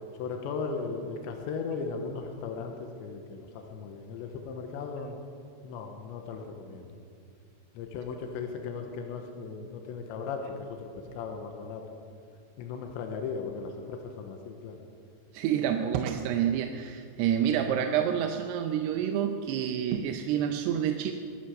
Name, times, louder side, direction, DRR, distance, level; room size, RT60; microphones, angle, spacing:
voice 1, 0.2-5.2 5.6-6.9 7.8-11.8 12.6-14.8, left 5 dB, 85° left, 4 dB, 3.4 m, -37 dB
voice 2, 15.3-21.1, right 9 dB, 80° right, 5 dB, 2.6 m, -28 dB
22.0 x 9.7 x 6.5 m, 2.4 s
omnidirectional pair, 5.2 m